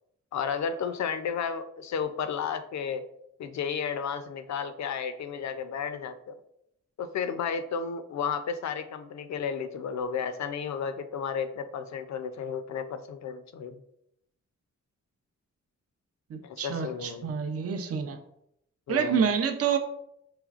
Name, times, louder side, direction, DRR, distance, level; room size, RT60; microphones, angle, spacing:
voice 1, 0.3-3.0 3.4-6.3 7.0-13.8 16.4-17.4 18.9-19.3, left 6 dB, 70° left, 10 dB, 0.5 m, -33 dB
voice 2, 16.3-18.2 18.9-19.8, right 7 dB, 55° right, 6 dB, 0.5 m, -28 dB
5.0 x 3.1 x 2.4 m, 0.79 s
cardioid pair, 80°, 29 cm